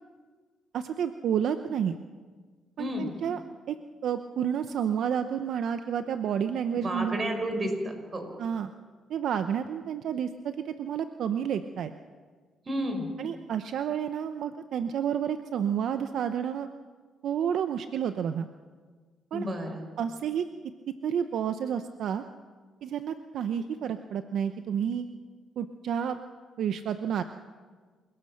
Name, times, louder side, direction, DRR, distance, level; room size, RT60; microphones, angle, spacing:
voice 1, 0.7-2.0 2.8-3.4 3.7-3.8 4.0-7.2 8.4-8.7 9.1-11.9 13.2-16.7 17.2-18.5 19.3-19.5 20.0-20.4 21.0-22.2 22.8-25.1 25.6-26.2 26.6-27.2, right 8 dB, 70° right, 9 dB, 0.8 m, -30 dB
voice 2, 2.8-3.1 6.7-7.7 8.1-8.3 12.7-13.1 19.3-19.8, equal, 35° right, 4 dB, 5.6 m, -31 dB
27.5 x 18.0 x 6.6 m, 1.5 s
cardioid pair, 90°, 0 cm